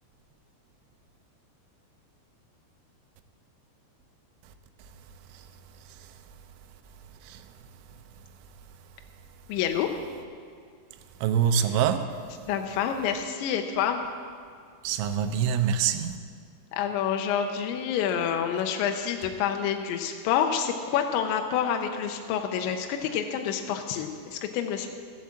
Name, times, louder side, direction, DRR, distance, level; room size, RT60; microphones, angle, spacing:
voice 1, 9.5-9.9 12.5-14.0 16.7-24.9, left 8 dB, 80° left, 2.9 m, -28 dB
voice 2, 11.2-12.2 14.8-16.2, right 8 dB, 85° right, 3.1 m, -25 dB
15.5 x 7.5 x 7.3 m
omnidirectional pair, 5.5 m